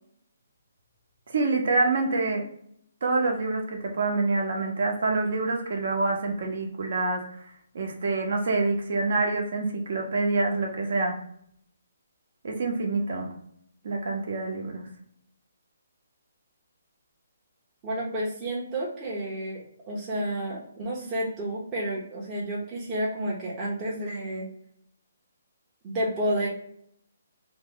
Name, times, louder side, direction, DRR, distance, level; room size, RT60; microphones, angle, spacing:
voice 1, 1.3-2.4 3.0-7.4 7.7-11.2 12.4-13.3 13.8-14.9, right 3 dB, 55° right, 2 dB, 0.8 m, -26 dB
voice 2, 17.8-24.5 25.8-26.5, right 1 dB, 20° right, -6 dB, 0.7 m, -30 dB
3.0 x 2.1 x 3.6 m, 0.68 s
hypercardioid pair, 165°, 0 cm